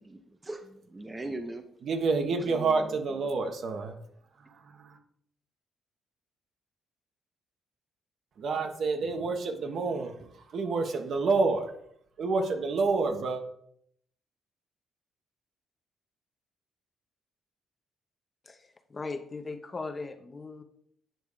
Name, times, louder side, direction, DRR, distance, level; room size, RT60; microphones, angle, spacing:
voice 1, 0.0-1.7 2.3-3.2, right 2 dB, 20° right, 7 dB, 0.7 m, -40 dB
voice 2, 1.8-4.0 4.3-5.0 8.4-11.7 12.2-13.4, right 4 dB, 60° right, 5 dB, 1.1 m, -29 dB
voice 3, 18.5-20.6, left 3 dB, 30° left, 7 dB, 0.8 m, -39 dB
9.0 x 3.5 x 5.0 m, 0.69 s
cardioid pair, 90°, 0 cm